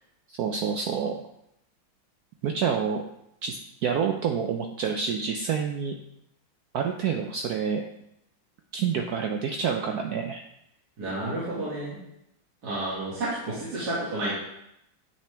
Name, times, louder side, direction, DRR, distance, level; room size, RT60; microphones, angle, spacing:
voice 1, 0.3-1.1 2.4-3.0 3.4-5.9 6.7-7.8 8.7-10.4, right 6 dB, 85° right, 4 dB, 0.8 m, -28 dB
voice 2, 11.0-12.0 12.6-14.4, right 2 dB, 50° right, -8 dB, 2.4 m, -30 dB
8.1 x 5.7 x 3.4 m, 0.81 s
omnidirectional pair, 2.2 m